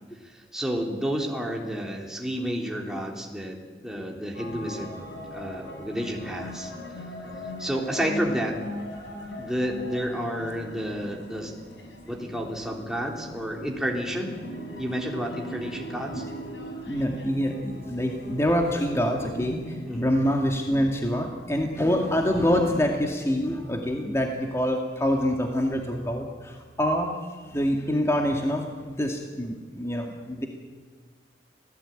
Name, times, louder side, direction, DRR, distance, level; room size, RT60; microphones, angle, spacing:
voice 1, 0.3-3.6 3.8-5.0 5.3-6.7 7.6-8.6 9.4-11.5 12.1-14.3 14.8-16.2 19.9-20.2, equal, 5° right, -1 dB, 3.5 m, -30 dB
sound 1, 4.3-19.8, equal, 80° left, 6.0 m, -39 dB
voice 2, 16.9-27.1 27.5-30.5, equal, 15° left, 1 dB, 2.2 m, -26 dB
28.5 x 18.5 x 9.1 m, 1.5 s
head